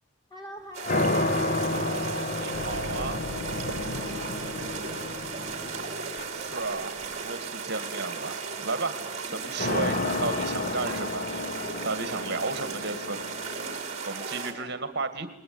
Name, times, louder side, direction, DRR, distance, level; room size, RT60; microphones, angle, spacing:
voice 1, 0.3-1.2 3.7-6.0 14.1-14.7, equal, 20° left, 2 dB, 5.4 m, -46 dB
sound 1, 0.7-14.5, right 5 dB, 30° right, 4.4 m, -36 dB
sound 2, 0.8-7.2 9.6-13.8, left 2 dB, 35° left, 1.5 m, -31 dB
voice 2, 1.6-3.2 6.3-9.0 9.3-11.3 11.8-13.2 14.1-15.3, right 3 dB, 50° right, 9 dB, 2.2 m, -34 dB
sound 3, 2.5-5.9, left 2 dB, 65° left, 1.5 m, -38 dB
29.5 x 21.0 x 9.6 m, 0.86 s
head